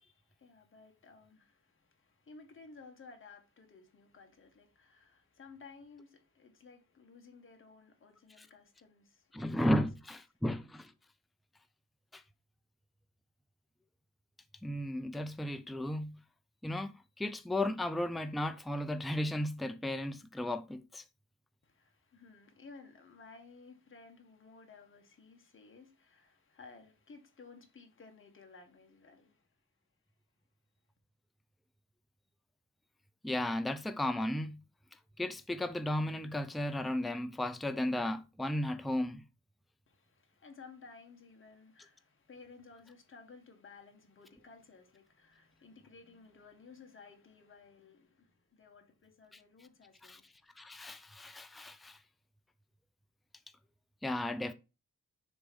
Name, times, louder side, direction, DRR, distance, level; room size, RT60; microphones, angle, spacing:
voice 1, 0.0-9.8 21.6-29.5 39.9-50.3, left 4 dB, 35° left, 1.5 m, -56 dB
voice 2, 9.3-10.9 12.1-12.2 14.6-16.2 16.6-21.0 33.2-34.6 35.2-39.2 50.0-50.2 50.6-52.0 54.0-54.5, left 1 dB, ahead, 0.4 m, -34 dB
6.9 x 3.1 x 5.3 m
wide cardioid pair, 145°, 33 cm